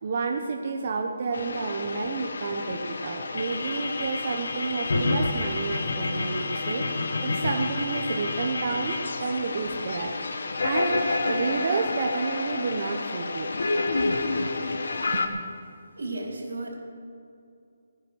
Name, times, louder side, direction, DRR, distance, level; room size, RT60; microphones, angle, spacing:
voice 1, 0.0-10.1 10.6-11.0 11.3-13.5 15.1-15.2, right 4 dB, 40° right, 3 dB, 0.9 m, -30 dB
sound 1, 1.3-15.3, left 3 dB, 65° left, 1.3 m, -29 dB
voice 2, 16.0-16.8, right 2 dB, 90° right, 0 dB, 4.3 m, -33 dB
16.0 x 9.8 x 6.4 m, 2.4 s
hypercardioid pair, 170°, 0 cm